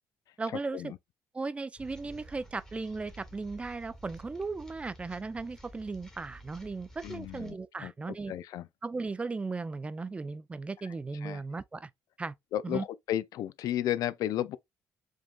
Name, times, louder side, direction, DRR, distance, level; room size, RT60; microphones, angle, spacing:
voice 1, 0.4-0.9 1.3-8.3 8.8-11.9 12.2-12.3 12.6-12.9, right 3 dB, 20° right, 0.4 m, -36 dB
sound 1, 1.8-7.5, right 1 dB, 10° left, 1.2 m, -51 dB
voice 2, 7.0-7.5 7.8-7.9 8.3-8.7 11.2-11.4 12.5-14.6, left 12 dB, 70° left, 0.4 m, -33 dB
4.9 x 3.7 x 2.4 m
cardioid pair, 105°, 6 cm